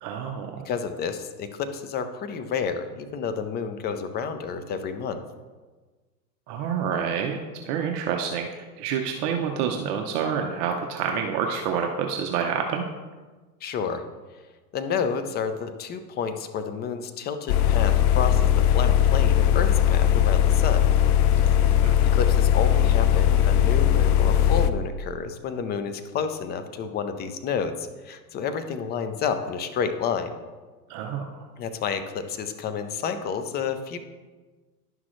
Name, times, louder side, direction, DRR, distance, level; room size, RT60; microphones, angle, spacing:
voice 1, 0.0-0.7 6.5-7.4 7.6-12.8 21.8-21.9 30.9-31.5, right 7 dB, 40° right, 3 dB, 0.8 m, -28 dB
voice 2, 0.6-5.2 13.6-14.0 14.7-20.9 22.1-30.4 31.6-34.0, left 6 dB, 20° left, 9 dB, 0.5 m, -30 dB
sound 1, 17.5-24.7, left 10 dB, 60° left, 0.7 m, -19 dB
11.0 x 6.0 x 3.2 m, 1.3 s
hypercardioid pair, 115°, 49 cm